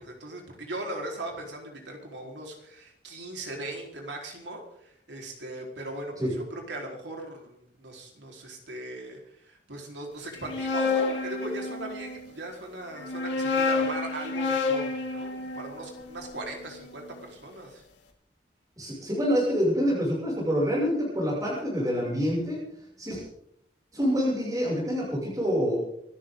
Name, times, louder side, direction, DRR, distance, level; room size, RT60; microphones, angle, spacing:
voice 1, 0.0-17.8, right 1 dB, 80° right, 1 dB, 4.5 m, -39 dB
sound 1, 10.3-12.2 13.0-17.1, left 4 dB, 85° left, 3.0 m, -30 dB
voice 2, 18.8-22.6 23.0-23.2 23.9-25.8, equal, 20° right, -5 dB, 6.9 m, -26 dB
25.5 x 13.5 x 3.9 m, 0.73 s
head